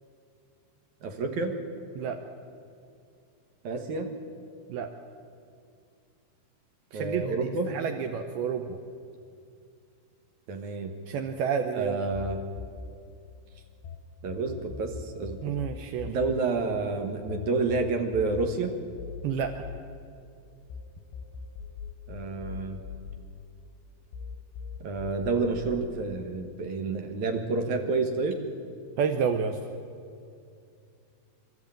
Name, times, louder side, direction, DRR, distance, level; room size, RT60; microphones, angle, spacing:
voice 1, 1.0-1.5 3.6-4.1 6.9-7.7 10.5-10.9 11.7-12.4 14.2-15.5 16.1-18.7 22.1-22.8 24.8-28.4, right 3 dB, 65° right, 4 dB, 1.9 m, -29 dB
voice 2, 6.9-8.8 11.1-12.0 15.4-16.2 19.2-19.5 29.0-29.6, right 7 dB, 85° right, 5 dB, 2.2 m, -30 dB
sound 1, 12.1-14.0 14.3-20.8 21.1-23.8 24.1-25.8, left 5 dB, 75° left, 5.4 m, -41 dB
25.0 x 13.0 x 8.9 m, 2.5 s
omnidirectional pair, 5.5 m